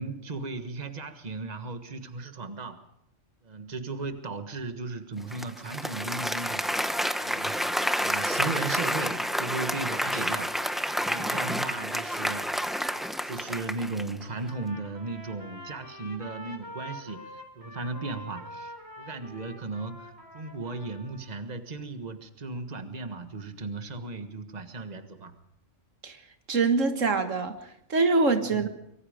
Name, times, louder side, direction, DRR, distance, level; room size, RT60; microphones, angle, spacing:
voice 1, 0.0-2.8 3.4-7.7 8.0-12.5 12.9-25.4 28.5-28.7, right 3 dB, 35° right, 9 dB, 1.6 m, -36 dB
Applause, 5.3-14.2, equal, ahead, 0.9 m, -29 dB
Trumpet, 14.5-21.4, left 1 dB, 15° right, 3.8 m, -45 dB
voice 2, 26.5-28.7, right 3 dB, 90° right, 8 dB, 2.1 m, -25 dB
24.5 x 23.0 x 5.1 m, 0.76 s
omnidirectional pair, 1.3 m